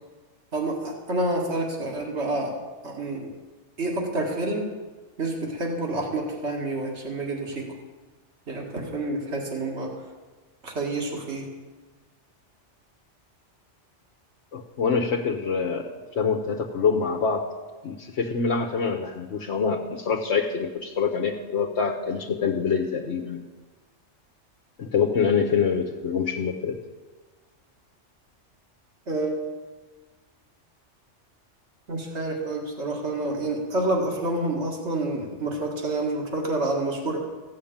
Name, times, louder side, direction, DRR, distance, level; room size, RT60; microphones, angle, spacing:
voice 1, 0.5-2.5 2.8-3.3 3.8-4.7 5.2-7.7 8.5-9.9 10.6-11.5 29.1-29.4 31.9-37.2, right 2 dB, 65° right, 0 dB, 2.3 m, -28 dB
voice 2, 14.5-17.4 17.8-23.4 24.8-26.8, left 5 dB, 70° left, 1 dB, 1.2 m, -25 dB
15.0 x 6.6 x 8.7 m, 1.3 s
omnidirectional pair, 1.2 m